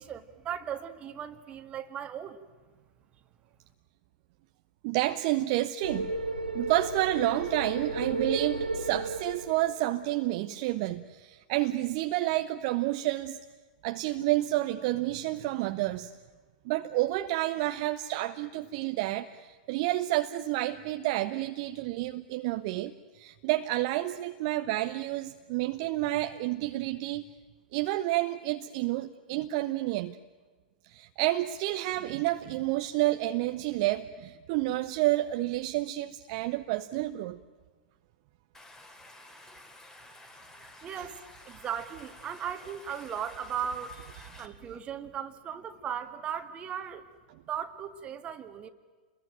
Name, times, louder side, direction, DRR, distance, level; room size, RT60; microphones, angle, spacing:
voice 1, 0.0-2.4 40.8-41.2 41.5-47.0 47.5-48.7, right 8 dB, 25° right, 1.9 m, -37 dB
voice 2, 4.8-6.1 6.5-13.4 13.8-16.1 16.6-27.2 27.7-30.2 30.8-37.4 41.0-41.1, right 16 dB, 45° right, 1.0 m, -30 dB
sound 1, 5.8-10.2, right 2 dB, 85° right, 2.9 m, -33 dB
Stream, 38.5-44.5, left 1 dB, 10° left, 3.0 m, -51 dB
29.0 x 22.0 x 9.1 m
figure-of-eight pair, 100°, 5 cm